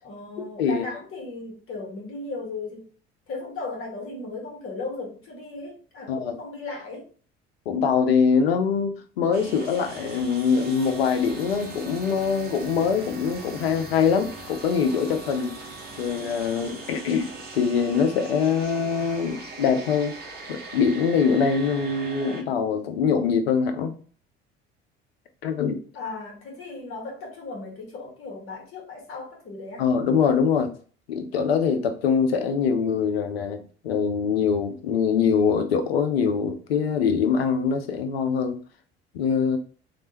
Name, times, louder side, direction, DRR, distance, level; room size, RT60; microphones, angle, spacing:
voice 1, 0.0-2.9 3.3-7.1 25.9-29.8, left 3 dB, 45° left, 0 dB, 1.5 m, -36 dB
voice 2, 7.7-15.5 16.0-20.2 20.5-23.9 25.4-25.8 29.8-30.7 31.1-38.6 39.1-39.6, left 6 dB, 80° left, 6 dB, 0.5 m, -23 dB
sound 1, 9.3-22.4, right 2 dB, 30° right, 1.0 m, -40 dB
3.2 x 2.5 x 3.0 m, 0.41 s
figure-of-eight pair, 60°, 30 cm